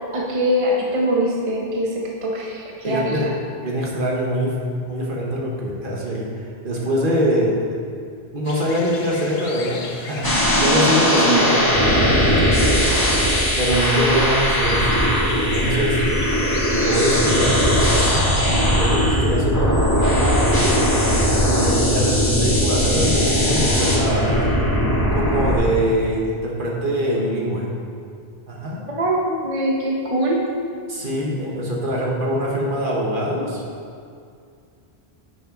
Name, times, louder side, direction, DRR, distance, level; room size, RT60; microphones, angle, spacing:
voice 1, 0.1-3.2 10.6-11.4 13.7-14.2 29.0-30.4, equal, 35° right, -3 dB, 0.9 m, -23 dB
voice 2, 2.8-3.3 3.6-7.6 8.3-11.6 11.9-12.9 13.6-16.0 16.7-17.6 18.5-20.8 21.3-24.7 25.1-27.7 28.5-28.8 30.9-33.6, equal, 55° right, -3 dB, 1.5 m, -24 dB
sound 1, 8.4-18.7, left 4 dB, 75° left, 1.0 m, -35 dB
sound 2, 10.2-25.6, equal, 20° left, 1.5 m, -19 dB
10.0 x 6.0 x 3.8 m, 2.3 s
omnidirectional pair, 1.0 m